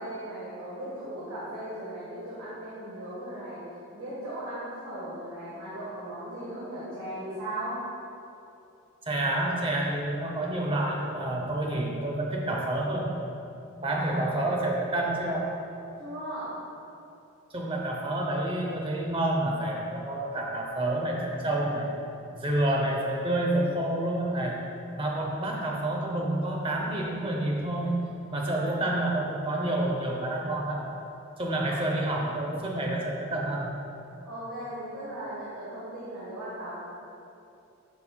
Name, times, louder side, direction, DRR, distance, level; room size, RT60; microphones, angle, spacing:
voice 1, 0.0-3.6 3.9-7.8 13.9-14.4 16.0-16.6 28.5-28.9 31.7-31.8 34.2-36.7, right 1 dB, 75° right, -9 dB, 1.4 m, -37 dB
voice 2, 9.1-13.1 13.8-15.5 17.5-21.9 22.3-24.6 25.0-28.0 28.3-30.9 31.4-33.7, right 1 dB, 25° right, -1 dB, 0.7 m, -28 dB
10.5 x 4.3 x 2.2 m, 2.7 s
head